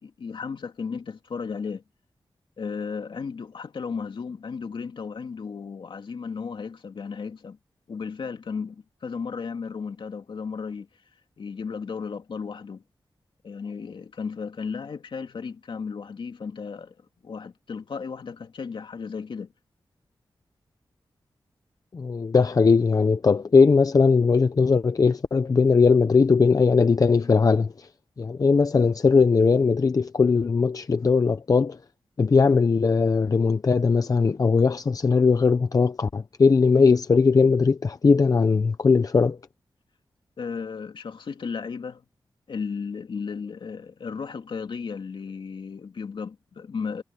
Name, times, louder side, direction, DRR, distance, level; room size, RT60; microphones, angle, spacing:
voice 1, 0.0-1.8 2.6-7.6 7.9-10.9 11.4-12.8 13.4-16.9 17.2-19.5 40.4-42.0 42.5-47.0, left 5 dB, 70° left, 2.8 m, -34 dB
voice 2, 21.9-27.9 28.2-31.8 32.2-39.4, left 4 dB, 45° left, 0.7 m, -19 dB
wide cardioid pair, 130°, 9 cm